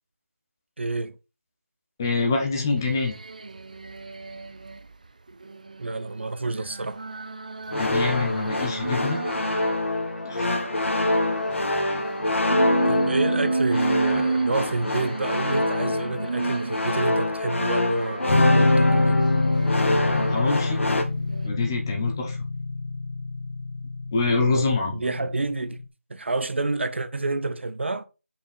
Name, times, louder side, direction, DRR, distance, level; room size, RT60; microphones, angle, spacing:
voice 1, 0.8-1.2 5.8-7.0 12.9-19.2 24.4-24.7 24.9-25.8 26.1-28.0, right 3 dB, 55° right, 0.8 m, -29 dB
voice 2, 2.0-3.1 7.8-9.2 10.3-10.5 20.3-20.8 21.4-22.4 24.1-25.0, left 3 dB, 15° left, 0.9 m, -25 dB
sound 1, 2.7-4.8 5.3-9.8 10.2-17.2 17.8-20.7 21.2-21.5, right 3 dB, 35° right, 0.3 m, -32 dB
sound 2, 7.7-21.0, left 1 dB, 65° left, 1.5 m, -25 dB
sound 3, 18.3-25.9, left 3 dB, 40° left, 1.1 m, -25 dB
5.5 x 4.7 x 5.2 m
figure-of-eight pair, 175°, 7 cm